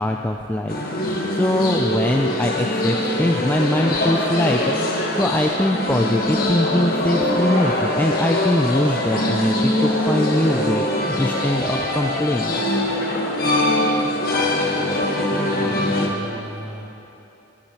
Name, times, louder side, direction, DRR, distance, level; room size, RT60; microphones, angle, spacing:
voice 1, 0.0-12.6, left 1 dB, 10° left, 2 dB, 0.3 m, -22 dB
sound 1, 0.7-16.1, left 1 dB, 50° left, 1.3 m, -22 dB
voice 2, 15.3-16.9, equal, 25° right, -5 dB, 2.1 m, -36 dB
19.0 x 8.6 x 3.0 m, 2.8 s
head